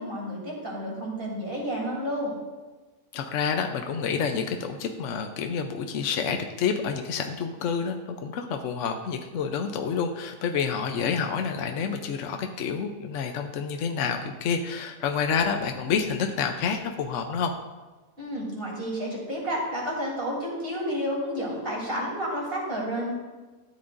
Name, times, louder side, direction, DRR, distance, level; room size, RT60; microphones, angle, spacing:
voice 1, 0.0-2.3 18.2-23.1, equal, 30° right, -4 dB, 3.3 m, -31 dB
voice 2, 3.1-17.5, left 6 dB, 65° left, 5 dB, 0.7 m, -28 dB
13.5 x 8.7 x 2.5 m, 1.2 s
omnidirectional pair, 1.9 m